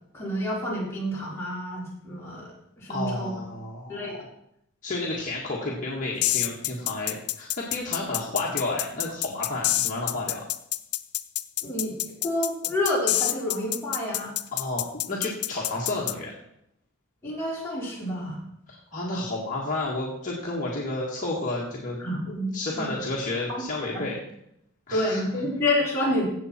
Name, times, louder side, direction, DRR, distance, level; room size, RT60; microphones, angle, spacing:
voice 1, 0.1-2.5 2.8-3.4 3.9-4.1 11.6-14.3 17.2-18.4 22.0-23.0 23.5-23.7 23.9-24.0 24.9-26.2, left 1 dB, 10° left, -8 dB, 4.5 m, -29 dB
voice 2, 2.9-4.2 4.8-10.4 14.5-16.3 18.7-22.0 22.5-24.2 24.9-25.2, left 2 dB, 35° left, -5 dB, 1.7 m, -31 dB
sound 1, 6.2-16.1, left 15 dB, 85° left, 0.5 m, -27 dB
16.5 x 7.2 x 4.4 m, 0.77 s
head